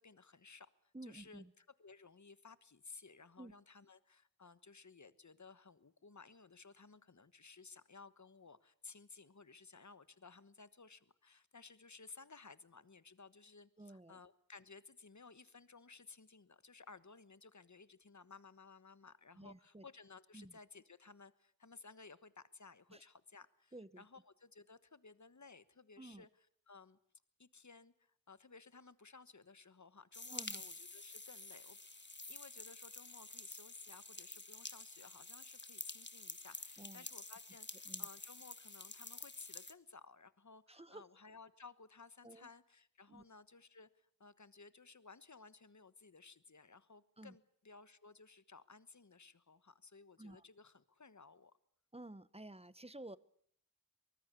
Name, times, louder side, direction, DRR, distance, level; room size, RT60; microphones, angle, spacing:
voice 1, 0.0-27.0 27.4-31.8 32.3-51.5, left 4 dB, 55° left, 14 dB, 1.3 m, -58 dB
voice 2, 0.9-1.5 3.4-3.5 13.8-14.2 19.4-19.8 20.3-20.5 22.9-23.0 23.7-24.0 26.0-26.3 30.3-30.6 36.8-37.0 37.9-38.1 40.7-41.0 42.2-42.5 43.1-43.2 47.2-47.3 50.2-50.4 51.9-53.2, right 1 dB, 15° right, 17 dB, 1.0 m, -52 dB
sound 1, 30.1-39.7, left 2 dB, 30° left, 1.5 m, -49 dB
24.0 x 20.5 x 8.4 m, 0.66 s
wide cardioid pair, 50°, 34 cm